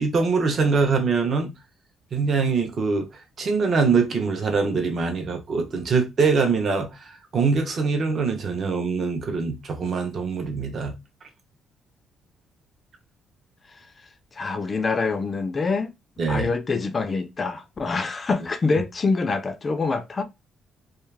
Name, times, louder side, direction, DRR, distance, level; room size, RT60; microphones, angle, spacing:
voice 1, 0.0-1.5 2.1-3.1 3.4-6.9 7.3-10.9 16.2-16.5, right 4 dB, 35° right, 0.6 m, -23 dB
voice 2, 14.4-15.9 16.3-20.2, left 4 dB, 25° left, 0.3 m, -25 dB
2.3 x 2.3 x 3.2 m
cardioid pair, 165°, 0 cm